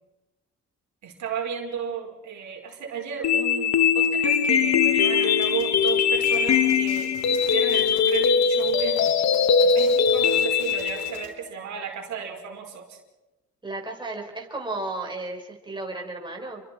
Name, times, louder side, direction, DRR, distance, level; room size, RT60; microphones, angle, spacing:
voice 1, 1.0-13.0, right 7 dB, 70° right, 1 dB, 5.1 m, -33 dB
sound 1, 3.2-11.2, left 6 dB, 60° left, 1.7 m, -21 dB
sound 2, 5.4-11.3, left 6 dB, 85° left, 3.8 m, -47 dB
voice 2, 13.6-16.6, right 2 dB, 15° right, 0 dB, 5.3 m, -34 dB
29.5 x 24.0 x 4.6 m, 1.0 s
cardioid pair, 90°, 30 cm